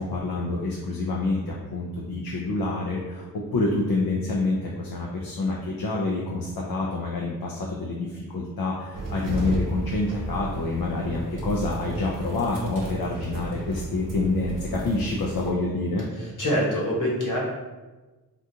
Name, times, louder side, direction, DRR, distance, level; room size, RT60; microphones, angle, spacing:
voice 1, 0.0-16.1, left 2 dB, 70° left, -2 dB, 0.6 m, -27 dB
sound 1, 8.9-15.5, right 1 dB, 60° right, 0.7 m, -33 dB
voice 2, 16.1-17.4, equal, 55° left, -4 dB, 1.2 m, -25 dB
3.7 x 2.4 x 2.7 m, 1.2 s
cardioid pair, 45°, 37 cm